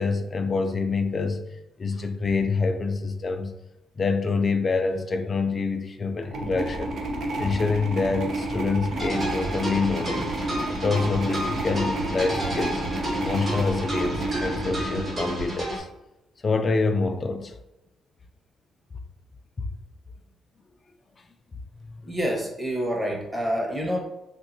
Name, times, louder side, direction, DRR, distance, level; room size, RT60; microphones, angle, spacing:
voice 1, 0.0-1.4 1.8-3.5 4.0-6.9 7.4-10.3 10.7-12.8 13.2-15.9 16.4-17.6, left 4 dB, 40° left, 7 dB, 0.4 m, -26 dB
sound 1, 6.2-15.6, right 1 dB, 65° right, 0.7 m, -31 dB
sound 2, 9.0-15.8, right 1 dB, 35° right, 1.3 m, -31 dB
voice 2, 22.0-24.0, equal, 10° right, -1 dB, 1.0 m, -27 dB
3.6 x 2.4 x 2.7 m, 0.92 s
cardioid pair, 90°, 0 cm